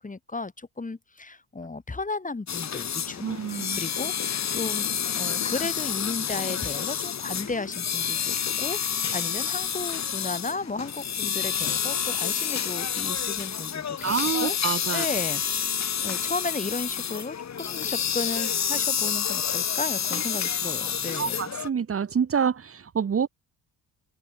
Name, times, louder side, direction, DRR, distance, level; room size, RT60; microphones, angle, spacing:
voice 1, 0.0-4.1 4.5-15.4 16.0-21.4, left 3 dB, 20° left, 6.3 m, -34 dB
sound 1, 2.5-21.7, left 8 dB, 45° left, 3.4 m, -29 dB
voice 2, 3.2-3.8 14.0-15.1 20.1-20.2 21.1-23.3, right 7 dB, 35° right, 2.0 m, -27 dB
open air
cardioid pair, 85°, 37 cm